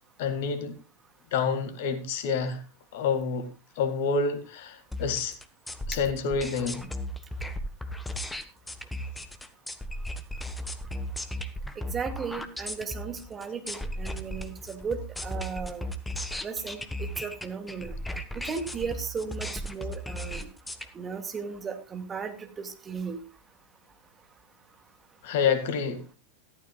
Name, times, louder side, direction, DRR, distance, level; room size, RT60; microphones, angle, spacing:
voice 1, 0.2-0.8 1.3-2.6 2.9-3.5 3.8-5.3 5.9-6.9 25.2-26.0, left 5 dB, 50° left, 9 dB, 2.0 m, -28 dB
sound 1, 4.9-20.9, left 1 dB, 5° left, 1.3 m, -36 dB
voice 2, 11.8-15.9 16.4-17.9 18.3-20.5 20.9-23.2, right 5 dB, 20° right, 5 dB, 2.3 m, -36 dB
15.0 x 13.5 x 2.4 m, 0.33 s
figure-of-eight pair, 90°, 0 cm